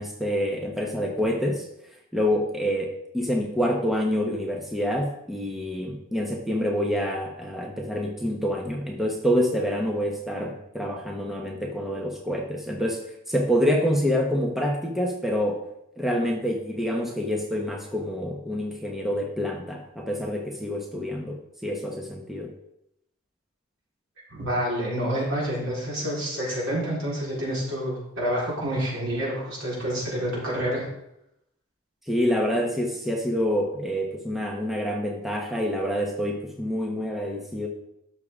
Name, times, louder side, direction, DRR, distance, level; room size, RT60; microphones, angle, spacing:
voice 1, 0.0-1.6 2.1-13.0 13.3-15.6 16.0-22.5 32.1-37.7, equal, ahead, -1 dB, 1.0 m, -27 dB
voice 2, 24.3-30.9, equal, 75° right, -5 dB, 4.1 m, -28 dB
12.5 x 6.5 x 3.7 m, 0.81 s
head